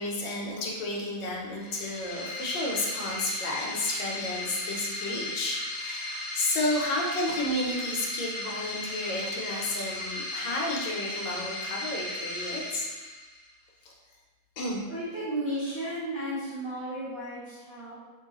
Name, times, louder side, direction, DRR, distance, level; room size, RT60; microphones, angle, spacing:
voice 1, 0.0-12.9 13.8-13.9 14.6-14.9, left 2 dB, 70° left, -2 dB, 1.2 m, -32 dB
sound 1, 1.5-13.5, left 2 dB, 50° left, 0.7 m, -36 dB
voice 2, 14.9-17.9, right 1 dB, 80° right, -11 dB, 0.5 m, -34 dB
2.9 x 2.9 x 2.9 m, 1.2 s
omnidirectional pair, 2.3 m